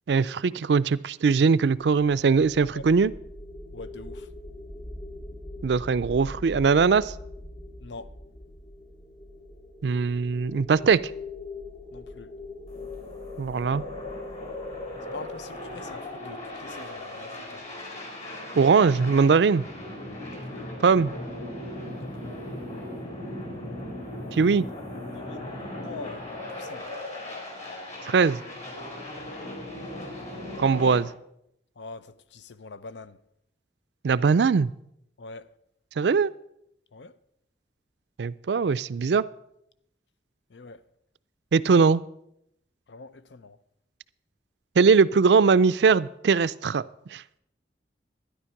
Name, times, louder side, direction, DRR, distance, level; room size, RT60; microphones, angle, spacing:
voice 1, 0.1-3.1 5.6-7.1 9.8-11.0 13.4-13.8 18.6-19.6 20.8-21.1 24.3-24.7 28.0-28.4 30.6-31.1 34.0-34.7 36.0-36.3 38.2-39.2 41.5-42.0 44.8-46.8 47.1-47.2, right 5 dB, 70° right, 0.4 m, -21 dB
sound 1, 2.5-16.8, left 2 dB, 55° left, 2.3 m, -42 dB
voice 2, 3.7-4.3 7.8-8.1 11.9-12.3 15.1-17.7 20.2-20.8 22.0-22.4 24.9-26.9 29.2-29.7 31.8-33.2 35.2-35.5 36.9-37.2 40.5-40.8 42.9-43.6, left 3 dB, 85° left, 0.6 m, -44 dB
sound 2, 12.7-31.0, left 1 dB, 40° left, 4.2 m, -38 dB
12.5 x 10.0 x 5.8 m
head